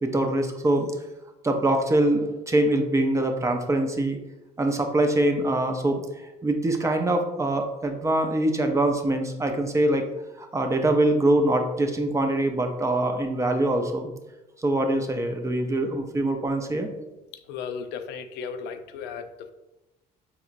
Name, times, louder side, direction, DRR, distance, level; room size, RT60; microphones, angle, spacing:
voice 1, 0.0-0.9 1.4-4.2 4.6-10.0 10.4-14.1 14.6-16.9, right 1 dB, 20° right, 4 dB, 0.4 m, -24 dB
voice 2, 17.5-19.5, left 6 dB, 85° left, 8 dB, 0.4 m, -35 dB
4.3 x 2.9 x 2.4 m, 0.99 s
cardioid pair, 110°, 17 cm